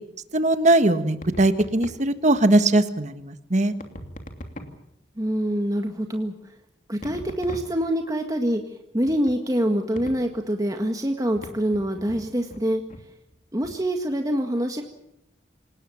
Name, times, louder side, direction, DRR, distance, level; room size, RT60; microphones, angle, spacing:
voice 1, 0.3-3.7, right 2 dB, 45° right, 10 dB, 1.6 m, -20 dB
sound 1, 1.2-2.1 3.8-4.9 7.0-8.1 9.0-9.4 10.0-10.4 11.4-12.6 12.9-13.1 13.6-13.9, equal, 50° left, 2.9 m, -40 dB
voice 2, 5.2-6.3 6.9-8.6 8.9-12.8 13.5-14.8, equal, 20° right, 4 dB, 1.8 m, -25 dB
28.0 x 18.5 x 7.2 m, 0.85 s
head